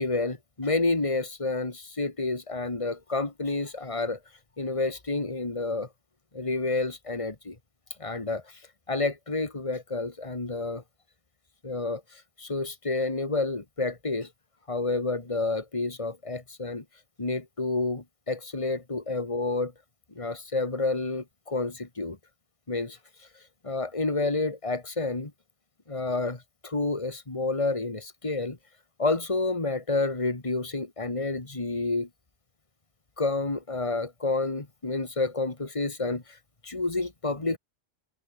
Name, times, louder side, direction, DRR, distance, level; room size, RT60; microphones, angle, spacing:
voice 1, 0.0-4.2 4.6-5.9 6.3-7.6 8.0-8.4 8.9-10.8 11.6-14.3 14.7-16.8 17.2-19.7 20.2-22.2 22.7-23.0 23.6-25.3 25.9-28.6 29.0-32.1 33.2-36.2 36.6-37.6, left 3 dB, 30° left, 2.4 m, -29 dB
omnidirectional pair, 1.0 m